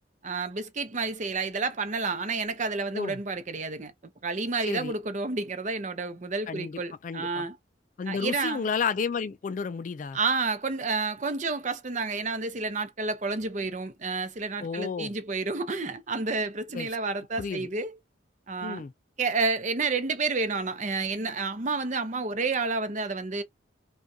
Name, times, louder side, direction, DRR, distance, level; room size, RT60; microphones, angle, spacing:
voice 1, 0.2-3.9 4.2-7.6 8.1-8.7 10.1-17.9 18.5-18.8 19.2-23.4, right 4 dB, 40° right, 0.6 m, -30 dB
voice 2, 4.6-4.9 6.5-7.5 8.0-10.2 14.6-15.1 16.7-16.9 17.4-17.7 18.6-18.9, left 5 dB, 40° left, 0.3 m, -32 dB
5.2 x 2.3 x 2.7 m
head